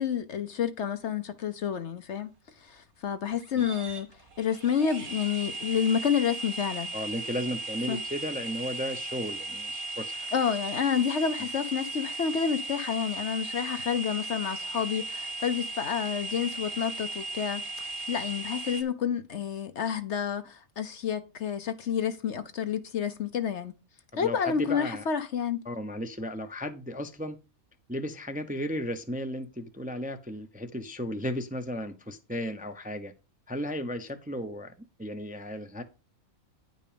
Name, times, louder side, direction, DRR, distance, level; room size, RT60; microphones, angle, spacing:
voice 1, 0.0-2.3 2.6-4.1 4.4-6.9 7.9-8.0 10.3-17.6 18.1-23.7 24.2-25.6, left 7 dB, 55° left, 1.0 m, -29 dB
sound 1, 3.3-18.8, right 3 dB, 80° right, 2.7 m, -37 dB
voice 2, 6.9-10.3 24.1-25.1 25.6-27.4 27.9-33.1 33.5-34.7 35.0-35.8, equal, 10° right, 0.7 m, -35 dB
10.0 x 5.3 x 5.1 m
omnidirectional pair, 1.5 m